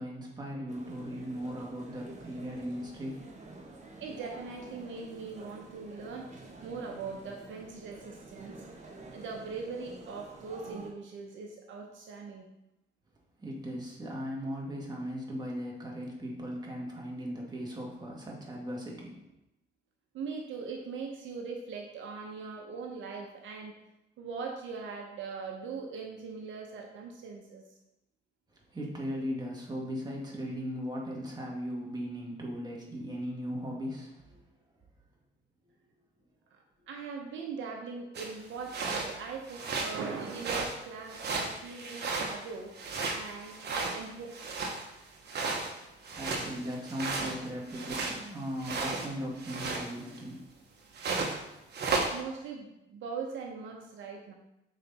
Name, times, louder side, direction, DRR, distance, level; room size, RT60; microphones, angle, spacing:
voice 1, 0.0-3.2 13.4-19.2 28.7-34.4 46.1-50.5, equal, 20° right, -2 dB, 1.8 m, -38 dB
sound 1, 0.7-10.9, right 2 dB, 35° right, 1.2 m, -49 dB
voice 2, 4.0-8.6 9.1-12.5 20.1-23.8 24.2-27.6 36.5-42.7 43.1-44.6 52.1-54.3, right 5 dB, 75° right, 2 dB, 0.9 m, -41 dB
sound 2, 38.1-38.3 38.7-39.1 39.5-40.0 40.2-40.8 41.1-42.5 42.7-44.9 45.3-48.2 48.6-49.1 49.4-50.2 50.9-51.4 51.7-52.1, right 3 dB, 55° right, 1.1 m, -34 dB
6.4 x 4.0 x 4.2 m, 0.90 s
cardioid pair, 90°, 20 cm